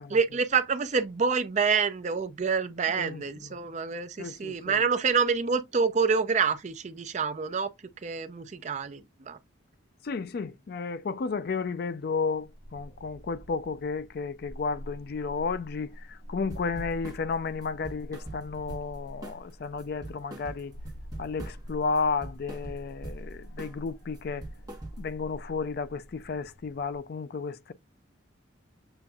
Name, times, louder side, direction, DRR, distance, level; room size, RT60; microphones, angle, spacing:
voice 1, 0.1-7.7 8.0-9.4, right 5 dB, 35° right, 0.4 m, -27 dB
voice 2, 4.2-4.8 10.0-20.7 21.2-24.4 25.0-27.7, left 4 dB, 50° left, 0.3 m, -32 dB
sound 1, 12.4-27.0, equal, 70° left, 2.2 m, -46 dB
sound 2, 16.5-17.2 17.6-19.0 19.2-19.5 19.8-21.7 22.0-23.2 23.6-23.9 24.1-25.2, right 1 dB, 20° right, 1.0 m, -42 dB
6.9 x 2.5 x 2.3 m
head